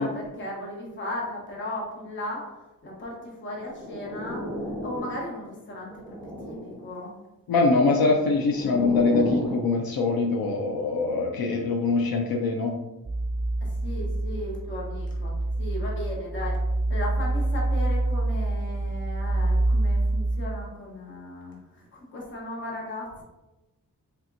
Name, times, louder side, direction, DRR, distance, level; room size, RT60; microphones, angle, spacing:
voice 1, 0.0-4.4 4.8-7.1 13.6-16.6 16.9-23.2, left 1 dB, 35° left, -3 dB, 1.0 m, -36 dB
sound 1, 3.6-5.4 5.8-6.9 7.8-9.7, equal, 5° left, 1.0 m, -34 dB
voice 2, 7.5-12.7, left 3 dB, 85° left, 2 dB, 0.5 m, -23 dB
sound 2, 13.0-20.5, right 2 dB, 20° right, 0.7 m, -26 dB
4.2 x 3.5 x 2.5 m, 1.0 s
wide cardioid pair, 150°, 35 cm